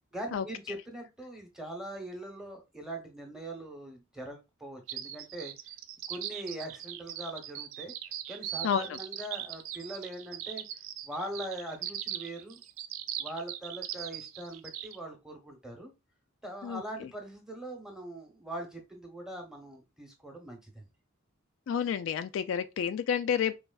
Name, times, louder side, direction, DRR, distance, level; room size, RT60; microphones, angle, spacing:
voice 1, 0.1-5.5 6.1-7.9 8.3-10.6 11.0-12.6 13.2-15.9 16.4-20.8, right 1 dB, 5° right, 0.9 m, -41 dB
sound 1, 4.9-15.0, right 11 dB, 75° right, 0.4 m, -39 dB
voice 2, 16.6-17.1 21.7-23.6, left 8 dB, 65° left, 0.3 m, -30 dB
4.6 x 3.1 x 2.3 m
head